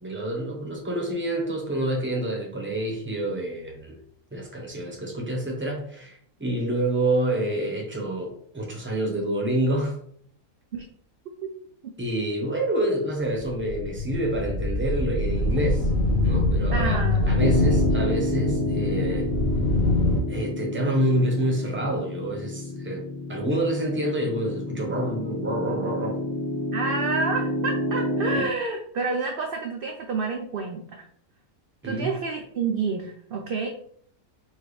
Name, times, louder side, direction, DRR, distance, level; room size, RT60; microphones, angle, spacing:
voice 1, 0.0-3.9 4.3-10.0 12.0-15.9 16.2-19.3 20.3-23.0 23.3-26.2 31.8-32.1, right 1 dB, 10° right, -1 dB, 0.9 m, -27 dB
sound 1, 13.4-20.2, left 2 dB, 70° left, 1.4 m, -24 dB
voice 2, 16.7-17.3 17.6-17.9 26.7-31.0 31.8-33.7, right 4 dB, 65° right, 2 dB, 0.6 m, -29 dB
Piano, 17.4-28.4, left 1 dB, 35° left, 0.6 m, -30 dB
4.6 x 2.9 x 3.2 m, 0.62 s
omnidirectional pair, 1.5 m